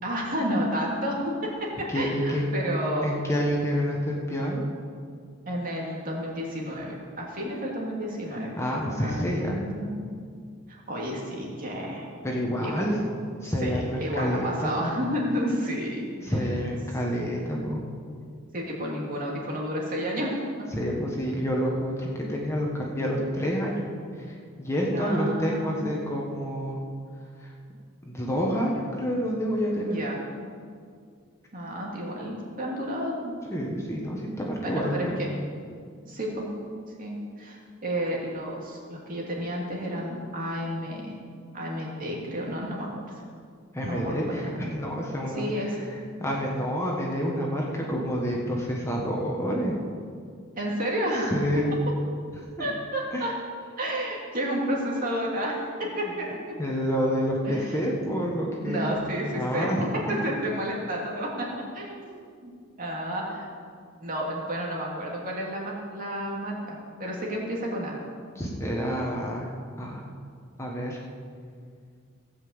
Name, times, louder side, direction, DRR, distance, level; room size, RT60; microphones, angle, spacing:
voice 1, 0.0-3.1 5.5-8.5 9.0-9.9 10.7-12.1 12.6-12.8 13.4-16.3 18.5-20.3 24.9-25.8 29.8-30.2 31.5-33.3 34.6-35.3 36.0-36.5 37.0-41.2 41.5-43.2 43.8-44.7 45.4-45.8 50.6-51.3 52.6-53.3 53.8-56.5 57.4-57.8 58.6-59.7 60.1-61.5 61.7-62.1 62.4-62.5 62.8-63.5 64.0-68.0, equal, 40° right, -3 dB, 2.6 m, -31 dB
voice 2, 1.9-2.5 3.0-4.6 8.5-9.6 12.2-13.0 13.4-14.9 16.2-17.8 20.7-23.8 24.1-26.8 27.4-27.5 28.0-30.0 33.5-35.2 43.7-49.7 51.3-51.7 52.4-52.7 53.1-53.3 56.6-58.9 59.3-59.9 68.3-69.5 69.8-70.1 70.6-71.0, equal, 15° left, -2 dB, 1.4 m, -28 dB
16.5 x 5.7 x 8.0 m, 2.2 s
head